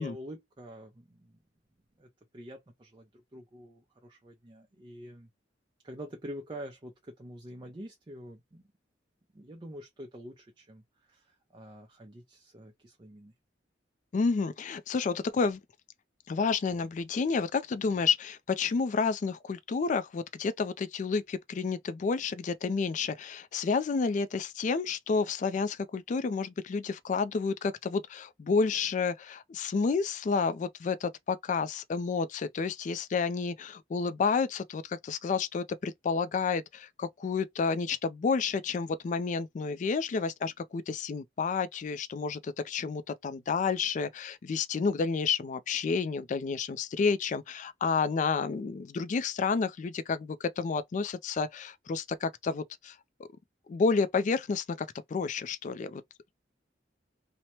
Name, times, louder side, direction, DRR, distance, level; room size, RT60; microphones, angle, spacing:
voice 1, 0.0-1.4 2.0-2.1 2.3-5.3 5.8-8.6 9.3-13.3, equal, 25° right, 0.5 m, -46 dB
voice 2, 14.1-15.6 16.3-53.0 53.7-56.0, left 5 dB, 40° left, 0.3 m, -30 dB
2.8 x 2.1 x 2.9 m
head